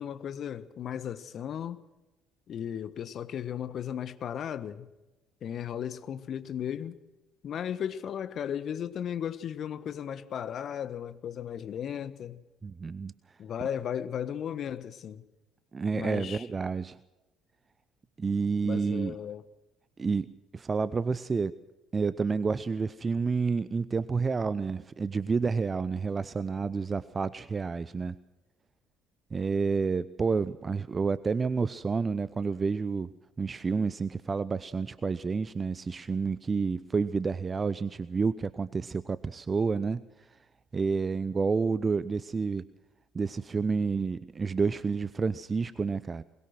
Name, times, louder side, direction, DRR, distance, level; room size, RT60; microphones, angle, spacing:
voice 1, 0.0-1.8 2.5-4.9 5.4-7.0 7.4-12.4 13.4-15.2 15.9-16.5 18.6-19.4, left 9 dB, 50° left, 1.3 m, -35 dB
voice 2, 12.6-13.1 15.7-17.0 18.2-19.2 20.0-21.5 21.9-28.1 29.3-33.1 33.4-40.0 40.7-42.7 43.1-46.2, right 4 dB, 30° right, 0.7 m, -29 dB
22.0 x 21.0 x 6.1 m
figure-of-eight pair, 55°, 0 cm